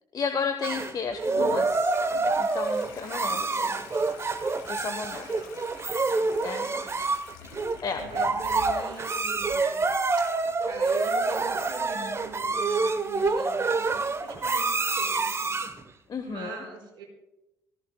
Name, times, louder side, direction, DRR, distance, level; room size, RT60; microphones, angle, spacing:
voice 1, 0.1-1.9 2.4-3.7 4.7-5.3 6.4-6.7 7.4-8.0 11.9-12.2 16.1-16.5, left 5 dB, 40° left, 7 dB, 1.1 m, -33 dB
sound 1, 0.6-15.8, right 3 dB, 25° right, 0.9 m, -27 dB
Toilet flush, 1.2-14.8, left 7 dB, 80° left, 1.2 m, -49 dB
voice 2, 3.2-4.1 4.8-5.6 6.0-9.9 10.2-10.3 10.6-17.0, right 4 dB, 55° right, 0 dB, 4.9 m, -44 dB
18.0 x 14.0 x 2.3 m, 0.93 s
hypercardioid pair, 50°, 10 cm